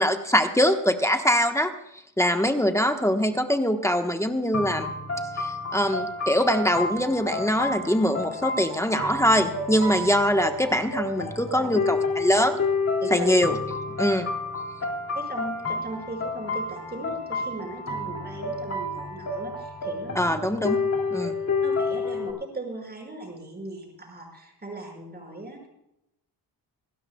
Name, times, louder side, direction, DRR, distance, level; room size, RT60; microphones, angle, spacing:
voice 1, 0.0-1.7 2.2-4.9 5.3-12.6 13.1-13.6 14.0-14.3 20.1-20.8 21.1-21.3, equal, 5° left, 5 dB, 1.2 m, -23 dB
sound 1, 4.5-22.3, left 3 dB, 35° left, 2.7 m, -30 dB
voice 2, 13.0-13.4 15.1-20.4 21.6-25.7, right 2 dB, 25° right, 1 dB, 5.9 m, -38 dB
27.0 x 12.5 x 2.3 m, 0.83 s
wide cardioid pair, 120°, 41 cm